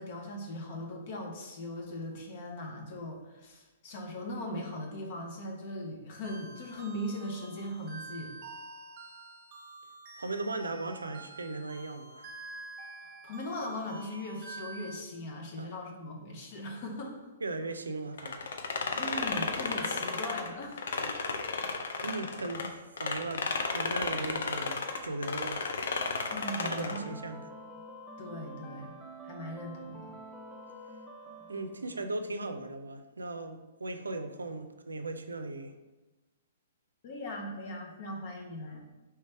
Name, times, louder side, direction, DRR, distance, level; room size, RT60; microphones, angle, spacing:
voice 1, 0.0-8.3 13.0-17.2 19.0-21.2 26.3-27.2 27.5-27.6 28.2-30.2 37.0-38.8, left 1 dB, 50° left, 1 dB, 0.9 m, -39 dB
sound 1, 6.2-15.0, right 3 dB, 45° right, 0.9 m, -47 dB
voice 2, 10.2-12.3 15.6-15.7 17.4-18.5 22.0-22.7 23.0-25.7 26.6-27.4 31.5-35.7, right 2 dB, 85° right, 8 dB, 0.4 m, -37 dB
sound 2, 18.2-22.7 23.0-27.1, left 4 dB, 65° left, 0.5 m, -33 dB
sound 3, 25.4-32.4, right 2 dB, 5° right, 0.5 m, -48 dB
3.2 x 3.2 x 4.5 m, 1.1 s
hypercardioid pair, 120°, 0 cm